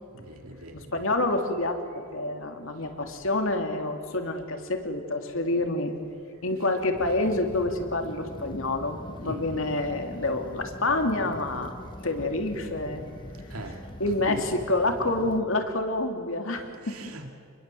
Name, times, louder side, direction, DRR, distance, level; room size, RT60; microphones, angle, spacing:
voice 1, 0.1-1.1 9.2-9.6 13.5-13.8 14.3-14.4 16.8-17.3, right 1 dB, 90° right, 4 dB, 2.6 m, -39 dB
voice 2, 0.7-5.9 6.4-11.7 12.0-13.0 14.0-16.9, left 2 dB, 65° left, 4 dB, 2.9 m, -28 dB
sound 1, 6.9-15.4, left 1 dB, 25° left, 1.7 m, -42 dB
28.0 x 21.5 x 7.8 m, 2.3 s
head